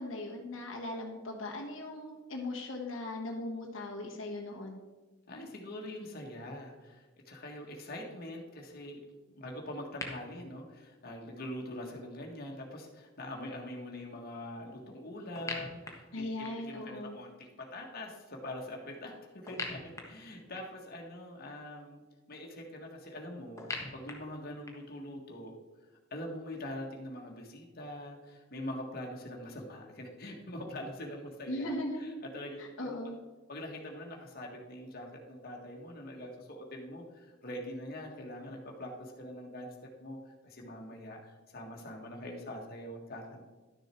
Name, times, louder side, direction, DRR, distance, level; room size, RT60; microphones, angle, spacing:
voice 1, 0.0-4.8 16.1-17.2 31.5-32.0 32.6-33.2, left 1 dB, 80° left, -1 dB, 1.2 m, -38 dB
voice 2, 5.3-9.0 9.3-19.8 20.0-22.0 22.3-23.7 23.9-25.6 26.1-31.7 32.3-33.0 33.5-40.2 40.4-43.5, left 1 dB, 50° left, 0 dB, 1.6 m, -43 dB
sound 1, 10.0-10.1 15.4-16.8 19.5-20.9 23.6-25.0, left 3 dB, 15° left, 1.3 m, -42 dB
11.5 x 6.6 x 4.5 m, 1.2 s
head